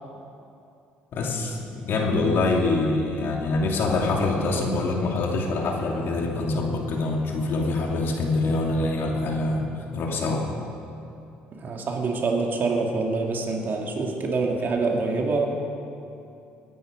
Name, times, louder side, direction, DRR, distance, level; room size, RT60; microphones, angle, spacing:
voice 1, 1.1-10.5, left 2 dB, 60° left, 0 dB, 2.6 m, -25 dB
voice 2, 11.6-15.5, right 3 dB, 50° right, 1 dB, 2.5 m, -25 dB
18.5 x 10.5 x 5.3 m, 2.7 s
supercardioid pair, 70°, 4 cm